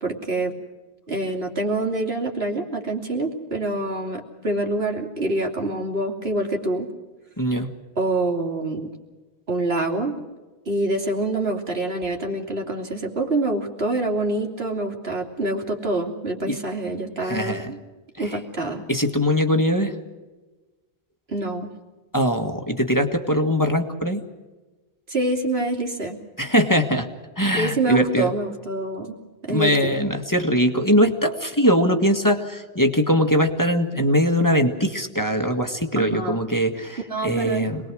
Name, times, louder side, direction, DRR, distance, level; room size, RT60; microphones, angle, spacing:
voice 1, 0.0-0.5 1.1-6.9 8.0-8.9 9.5-10.1 10.7-17.8 18.2-18.8 21.3-21.7 25.1-26.2 27.5-30.0 36.0-36.4 37.1-37.7, right 2 dB, 80° right, 2 dB, 3.1 m, -26 dB
voice 2, 7.4-7.7 16.4-16.6 17.2-17.7 18.2-18.4 18.9-20.0 22.1-24.2 26.4-27.1 27.4-28.3 29.5-37.9, equal, 20° left, 4 dB, 1.8 m, -21 dB
26.5 x 20.0 x 6.3 m, 1.2 s
omnidirectional pair, 1.0 m